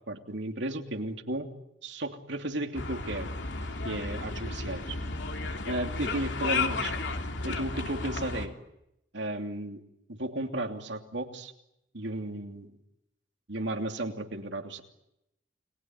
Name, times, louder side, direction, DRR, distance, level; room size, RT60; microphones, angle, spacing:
voice 1, 0.1-1.5 1.8-3.3 3.8-5.0 5.7-6.9 7.4-8.5 9.1-9.8 10.1-11.5 11.9-12.7 13.5-14.8, right 1 dB, 70° right, 5 dB, 3.0 m, -34 dB
sound 1, 2.8-8.5, left 3 dB, 70° left, 2.9 m, -33 dB
29.5 x 21.5 x 9.0 m, 0.84 s
head